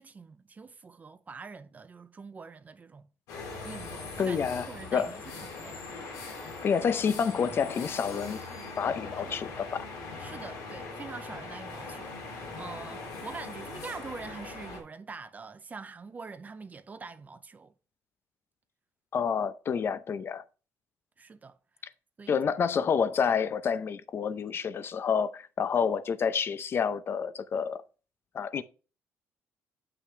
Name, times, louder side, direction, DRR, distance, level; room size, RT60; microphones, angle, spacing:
voice 1, 0.0-3.1 3.6-5.2 5.6-5.8 9.2-9.4 10.2-17.7 21.2-21.6 22.2-22.4, right 4 dB, 30° right, 0.5 m, -45 dB
sound 1, 3.3-14.8, left 3 dB, 90° left, 3.0 m, -41 dB
voice 2, 4.2-5.1 6.6-8.4 8.8-9.9 19.1-20.4 22.3-27.8 28.3-28.6, left 6 dB, 45° left, 0.7 m, -28 dB
8.2 x 5.8 x 3.3 m
cardioid pair, 95°, 5 cm